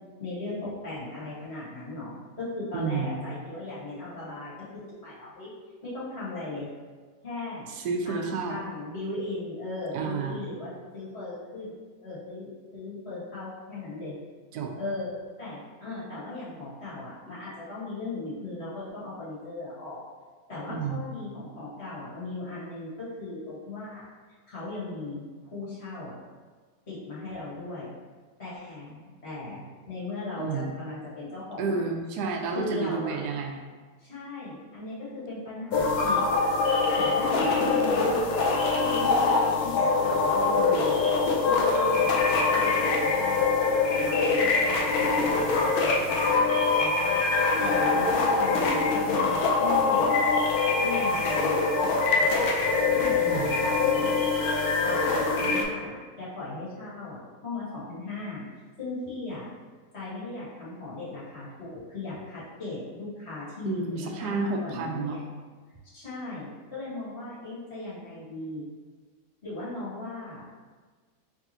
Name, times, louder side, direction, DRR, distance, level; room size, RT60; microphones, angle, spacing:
voice 1, 0.2-5.5 5.8-6.7 7.2-7.7 8.0-11.7 12.0-12.5 12.7-14.2 14.8-15.1 15.4-20.0 20.5-24.1 24.5-26.2 26.9-27.9 28.4-31.9 32.5-33.2 34.0-36.2 37.0-38.3 38.6-41.0 41.4-43.5 44.0-50.1 50.8-52.5 52.9-54.1 54.8-58.4 58.8-59.5 59.9-65.2 65.9-68.7 69.4-70.4, left 2 dB, 45° left, -9 dB, 1.7 m, -38 dB
voice 2, 2.7-3.3 7.7-8.6 9.9-10.4 14.5-14.7 20.7-21.1 30.4-30.7 31.6-33.6 53.2-53.5 63.6-65.2, right 4 dB, 90° right, 3 dB, 1.1 m, -30 dB
sound 1, 35.7-55.6, left 4 dB, 75° left, 1.2 m, -24 dB
4.7 x 3.4 x 2.8 m, 1.5 s
omnidirectional pair, 1.6 m